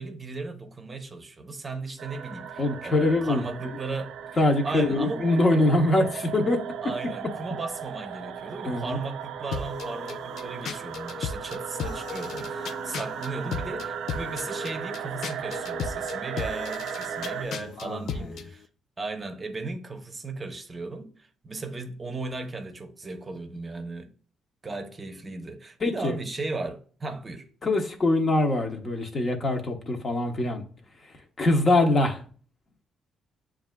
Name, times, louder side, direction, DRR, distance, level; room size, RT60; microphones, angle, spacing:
voice 1, 0.0-4.2 4.6-5.2 6.8-18.6 19.0-21.1 21.4-24.1 24.6-27.5, right 3 dB, 35° right, 0.6 m, -36 dB
sound 1, 2.0-17.4, right 8 dB, 80° right, 0.3 m, -36 dB
voice 2, 2.6-3.4 4.4-6.6 8.7-9.0 17.5-18.3 25.8-26.2 27.6-30.6 31.4-32.2, left 2 dB, 45° left, 0.8 m, -23 dB
sound 2, 9.5-18.5, left 6 dB, 70° left, 0.3 m, -36 dB
7.2 x 2.4 x 2.2 m
supercardioid pair, 65°, 0 cm